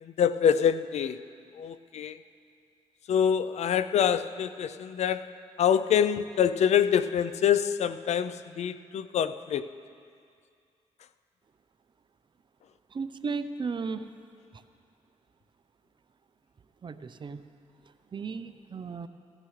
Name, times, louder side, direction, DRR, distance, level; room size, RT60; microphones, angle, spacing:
voice 1, 0.0-1.2 1.5-2.2 3.1-9.7, left 8 dB, 70° left, 13 dB, 0.4 m, -26 dB
voice 2, 12.9-14.1 14.5-14.6 16.8-17.4 18.1-19.1, right 5 dB, 40° right, 11 dB, 0.6 m, -35 dB
17.0 x 12.5 x 3.2 m, 2.3 s
cardioid pair, 75°, 12 cm